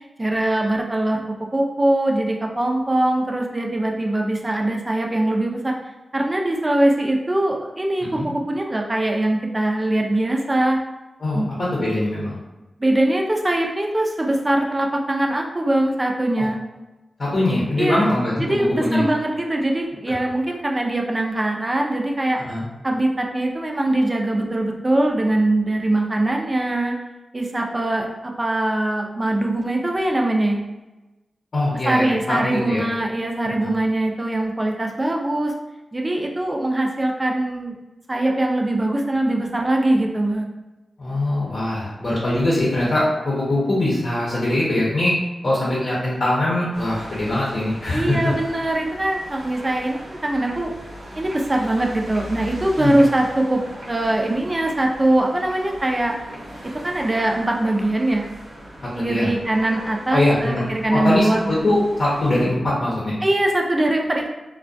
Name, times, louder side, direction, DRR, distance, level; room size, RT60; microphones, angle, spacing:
voice 1, 0.2-1.2 1.5-5.7 6.1-8.1 8.5-10.8 11.3-11.5 12.8-16.6 17.8-18.1 18.4-22.4 22.8-26.9 27.3-30.6 31.8-35.5 35.9-37.7 38.1-40.5 47.9-50.7 51.1-53.6 53.9-56.1 56.8-58.3 58.9-61.5 63.2-64.3, right 1 dB, 30° right, 1 dB, 0.4 m, -22 dB
voice 2, 11.2-12.4 16.4-16.5 17.2-19.0 22.5-22.6 31.5-32.8 33.6-33.7 41.0-45.1 45.4-48.3 52.8-52.9 58.8-59.3 60.1-60.6 60.9-63.2, left 1 dB, 60° left, -7 dB, 0.7 m, -22 dB
sound 1, 46.7-62.5, equal, 85° right, 0.8 m, -39 dB
2.3 x 2.1 x 2.5 m, 1.1 s
cardioid pair, 60°, 0 cm